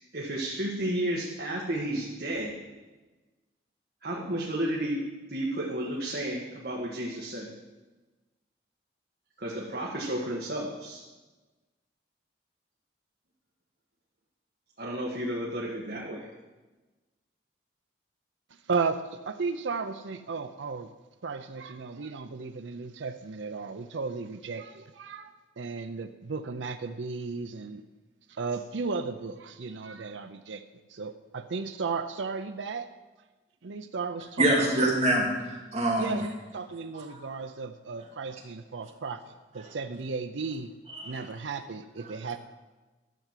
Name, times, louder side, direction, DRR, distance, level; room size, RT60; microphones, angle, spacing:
voice 1, 0.1-2.5 4.0-5.0 5.3-7.5 9.4-11.0 14.8-16.3, right 1 dB, 55° right, -3 dB, 1.6 m, -32 dB
voice 2, 18.7-20.9 21.2-27.8 28.3-30.6 30.9-32.9 33.6-34.7 36.0-40.7 41.0-42.4, right 4 dB, 90° right, 8 dB, 0.6 m, -35 dB
voice 3, 34.4-36.2 37.0-37.2 40.9-41.2, right 1 dB, 35° right, -2 dB, 2.4 m, -25 dB
12.0 x 6.1 x 7.4 m, 1.2 s
head